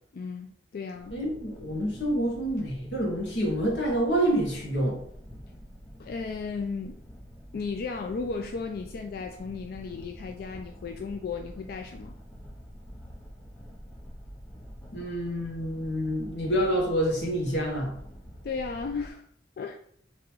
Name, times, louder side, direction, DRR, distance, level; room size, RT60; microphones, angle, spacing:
voice 1, 0.1-1.2 6.0-7.0 7.5-12.1 18.4-19.2 19.6-19.8, left 4 dB, 60° left, 5 dB, 0.3 m, -35 dB
sound 1, 0.9-19.1, equal, 10° left, 0.7 m, -47 dB
voice 2, 1.1-5.0 14.9-17.9, right 1 dB, 90° left, 0 dB, 1.4 m, -27 dB
3.7 x 2.9 x 4.5 m, 0.63 s
head